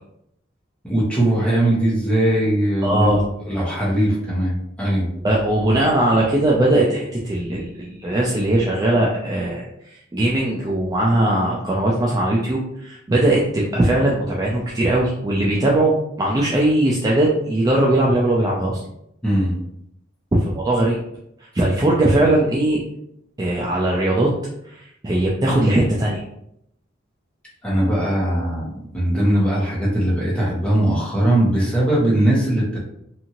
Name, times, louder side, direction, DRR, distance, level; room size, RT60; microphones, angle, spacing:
voice 1, 0.8-3.1 3.5-5.1 19.2-19.5 27.6-32.8, right 1 dB, 5° left, -6 dB, 0.9 m, -20 dB
voice 2, 2.8-3.2 5.2-18.8 20.4-21.0 21.4-22.8 23.4-24.3 24.6-26.2, right 1 dB, 20° right, -4 dB, 0.4 m, -19 dB
2.7 x 2.5 x 2.8 m, 0.76 s
head